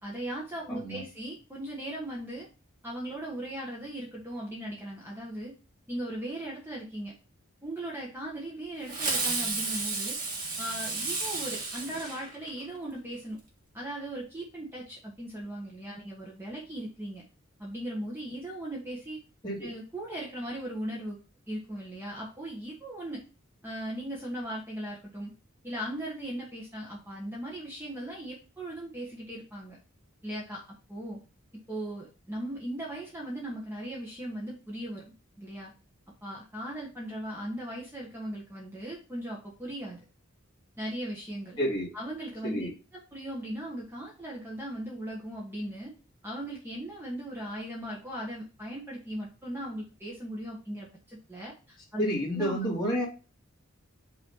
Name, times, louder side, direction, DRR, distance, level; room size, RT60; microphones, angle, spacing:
voice 1, 0.0-2.5 2.8-5.5 5.9-7.1 7.6-10.2 10.6-13.4 13.7-17.2 17.6-19.2 19.6-21.2 21.5-23.2 23.6-25.3 25.6-29.8 30.2-30.6 30.9-31.2 31.7-35.7 36.2-40.0 40.8-41.6 41.9-42.7 43.1-45.9 46.2-52.0 52.3-52.6, right 1 dB, 10° right, -3 dB, 1.3 m, -38 dB
voice 2, 0.7-1.0 19.4-19.6 41.6-41.9 42.4-42.7 52.0-53.1, equal, 20° left, -6 dB, 2.5 m, -29 dB
Fireworks, 8.9-12.8, right 3 dB, 40° right, 1.7 m, -32 dB
5.7 x 3.1 x 5.6 m, 0.32 s
head